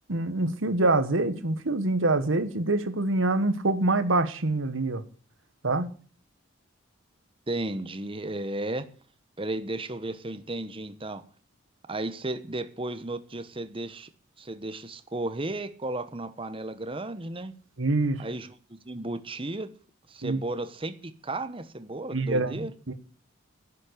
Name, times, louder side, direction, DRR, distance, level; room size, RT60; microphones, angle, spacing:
voice 1, 0.1-5.0 5.6-5.9 17.8-18.3 20.2-20.4 22.1-22.9, right 2 dB, 80° right, 1.5 m, -25 dB
voice 2, 7.5-8.9 9.4-11.2 11.9-14.1 14.4-17.5 18.2-18.5 18.8-19.7 20.1-22.7, right 2 dB, 25° right, 1.1 m, -34 dB
11.0 x 7.6 x 9.9 m
head